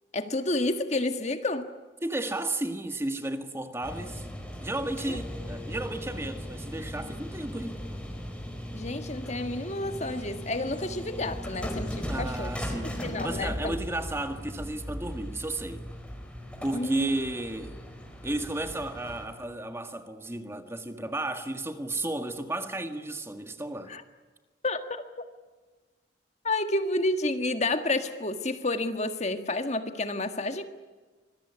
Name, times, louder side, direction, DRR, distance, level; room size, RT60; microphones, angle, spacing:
voice 1, 0.1-1.7 5.1-5.2 8.7-12.5 13.0-13.7 16.7-17.1 23.9-24.0 24.6-25.0 26.4-30.6, left 2 dB, 35° left, 1.7 m, -30 dB
voice 2, 2.0-4.3 4.6-7.8 12.1-12.9 13.2-15.8 16.6-17.8 18.2-24.0, right 1 dB, 15° right, 1.8 m, -33 dB
sound 1, 3.8-19.3, equal, 5° left, 4.5 m, -38 dB
25.5 x 21.5 x 9.8 m
head